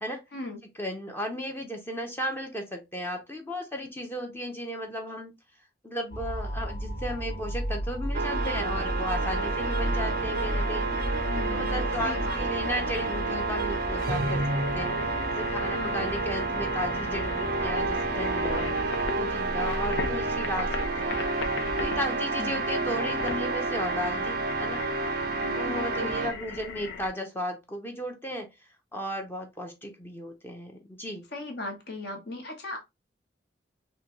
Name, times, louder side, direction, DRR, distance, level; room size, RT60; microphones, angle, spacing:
voice 1, 0.8-5.3 5.8-10.9 11.5-15.0 15.3-18.7 19.2-21.3 21.8-24.8 25.5-28.5 28.9-31.2, equal, 10° left, 0.5 m, -35 dB
sound 1, 6.1-21.1, equal, 45° left, 1.2 m, -35 dB
sound 2, 8.1-26.3, right 3 dB, 50° right, 0.4 m, -30 dB
voice 2, 8.3-8.8 11.3-12.7 15.7-16.1 22.4-22.6 25.4-26.3 31.3-32.8, left 2 dB, 60° left, 1.0 m, -38 dB
sound 3, 9.1-27.1, left 4 dB, 90° left, 0.6 m, -38 dB
3.7 x 2.2 x 2.9 m
head